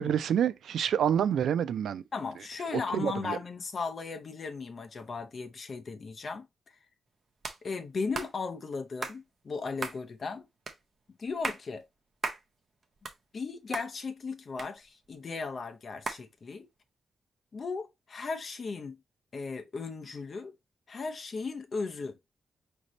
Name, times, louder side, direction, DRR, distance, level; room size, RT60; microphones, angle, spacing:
voice 1, 0.0-2.0 2.9-3.4, right 9 dB, 85° right, 0.3 m, -27 dB
voice 2, 2.1-6.8 7.6-10.5 11.2-11.9 13.3-16.7 17.5-19.0 19.3-20.5 20.9-22.2, left 4 dB, 40° left, 0.6 m, -36 dB
sound 1, 7.4-7.6 8.1-8.3 9.0-9.2 9.8-10.0 10.7-10.8 11.3-11.6 12.2-12.4 12.8-13.5 13.7-13.9 14.6-15.2 16.1-16.2, right 3 dB, 35° right, 0.6 m, -36 dB
5.1 x 2.7 x 2.9 m
wide cardioid pair, 170°, 0 cm